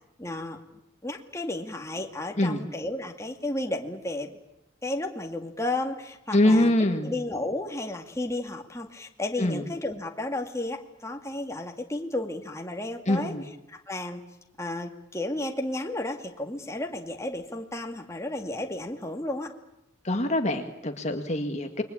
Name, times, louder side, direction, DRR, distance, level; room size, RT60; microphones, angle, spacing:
voice 1, 0.2-0.6 1.0-4.4 4.8-6.7 7.0-13.4 13.7-14.2 14.6-19.5, left 2 dB, 15° left, 3 dB, 2.3 m, -33 dB
voice 2, 6.3-7.1 9.4-9.6 13.1-13.4 20.0-21.8, left 1 dB, 35° left, 5 dB, 1.9 m, -24 dB
29.0 x 22.5 x 8.7 m, 0.86 s
head